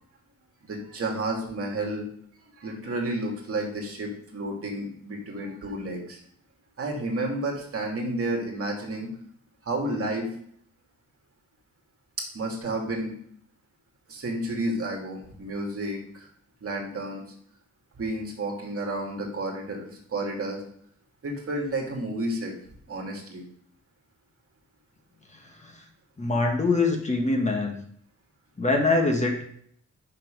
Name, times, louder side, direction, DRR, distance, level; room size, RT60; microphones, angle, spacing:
voice 1, 0.6-2.1 2.6-6.2 6.8-9.1 9.6-10.3 12.2-13.1 14.1-16.3 16.6-17.2 18.0-20.6 21.2-22.5 22.9-23.4, right 1 dB, 50° right, 1 dB, 2.3 m, -31 dB
voice 2, 26.2-27.8 28.6-29.4, left 3 dB, 25° left, 2 dB, 1.4 m, -24 dB
6.7 x 5.8 x 5.1 m, 0.64 s
cardioid pair, 105°, 30 cm